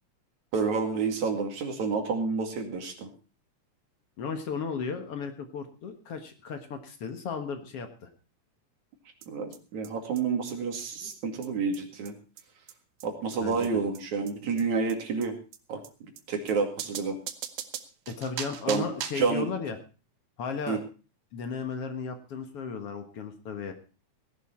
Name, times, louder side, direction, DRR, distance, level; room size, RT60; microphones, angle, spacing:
voice 1, 0.5-3.1 9.3-12.1 13.0-15.4 15.7-15.8 16.3-17.2 18.7-18.9 19.2-19.5 20.7-20.8, right 5 dB, 70° right, 4 dB, 3.7 m, -29 dB
voice 2, 4.2-8.1 13.4-13.7 18.1-19.8 20.4-20.8 21.3-23.7, left 5 dB, 55° left, 7 dB, 2.2 m, -35 dB
sound 1, 9.2-9.3 9.5-9.6 9.8-9.9 10.2-10.3 10.5-10.6 10.8-10.9 11.1-11.2 11.4-11.5 11.7-11.8 12.1-12.2 12.4-12.5 12.7-12.8 13.0-13.1 13.3-13.4 13.6-13.7 14.0-14.1 14.3-14.4 14.6-14.7 14.9-15.0 15.2-15.3 15.5-15.6 15.8-15.9 16.2-16.3 16.5-16.6 16.8-19.3, right 10 dB, 90° right, 2.6 m, -39 dB
17.5 x 11.0 x 4.4 m, 0.34 s
omnidirectional pair, 3.4 m